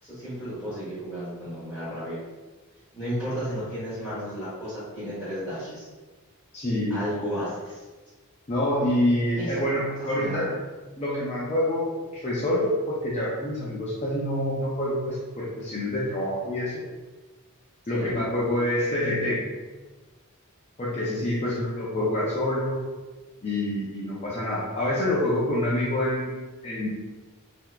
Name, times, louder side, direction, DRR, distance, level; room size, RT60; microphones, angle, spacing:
voice 1, 0.0-2.2 2.9-5.8 6.9-7.8 9.4-9.5 10.1-10.6 17.9-18.1 21.4-21.5, equal, 10° left, -14 dB, 1.3 m, -33 dB
voice 2, 6.5-7.0 8.5-10.5 11.0-16.8 17.9-19.5 20.8-22.9 23.4-26.3 26.6-26.9, left 1 dB, 30° left, -7 dB, 0.5 m, -26 dB
3.7 x 2.9 x 2.3 m, 1.2 s
head